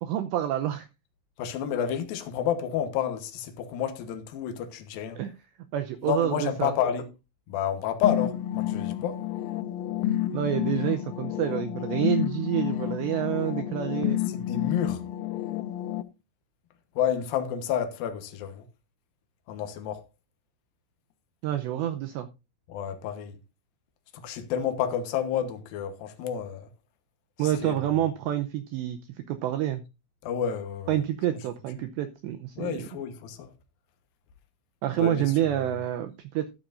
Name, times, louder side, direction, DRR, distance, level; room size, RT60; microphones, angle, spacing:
voice 1, 0.0-0.9 5.2-5.3 5.7-6.7 10.3-14.2 21.4-22.3 27.4-29.0 29.3-29.8 30.9-32.9 34.8-36.5, right 12 dB, 85° right, 2.5 m, -28 dB
voice 2, 1.4-5.2 6.0-7.0 7.5-9.2 14.3-15.0 17.0-18.6 19.5-20.0 22.7-23.4 24.1-26.7 27.4-27.8 30.2-30.9 31.8-31.9 32.6-33.5 35.0-35.2 35.5-35.8, left 9 dB, 75° left, 2.2 m, -30 dB
sound 1, 8.0-16.0, left 12 dB, 90° left, 3.5 m, -30 dB
12.5 x 12.0 x 2.6 m
omnidirectional pair, 5.9 m